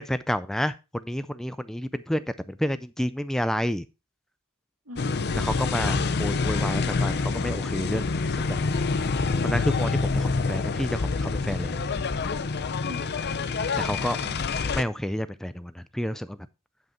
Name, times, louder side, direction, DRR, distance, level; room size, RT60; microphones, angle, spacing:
voice 1, 0.0-3.8 5.4-8.6 9.4-11.8 13.8-14.2 14.7-16.4, equal, ahead, 0.3 m, -30 dB
voice 2, 4.8-5.5 12.9-13.8 14.2-14.7, equal, 80° right, 2.2 m, -46 dB
sound 1, 5.0-14.8, left 4 dB, 50° left, 0.6 m, -27 dB
9.6 x 5.5 x 4.3 m
head